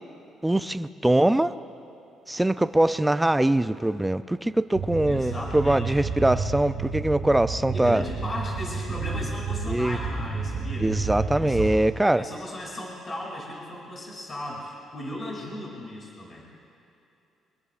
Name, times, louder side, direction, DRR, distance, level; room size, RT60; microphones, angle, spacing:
voice 1, 0.4-1.5 2.3-8.0 9.7-10.0 10.8-12.3, right 1 dB, 5° right, 12 dB, 0.3 m, -22 dB
sound 1, 4.7-11.8, right 4 dB, 80° right, 2.3 m, -31 dB
voice 2, 5.1-5.8 7.7-10.9 11.3-11.8 12.1-16.4, left 1 dB, 25° left, -2 dB, 2.7 m, -36 dB
24.0 x 20.0 x 2.5 m, 2.9 s
cardioid pair, 155°, 0 cm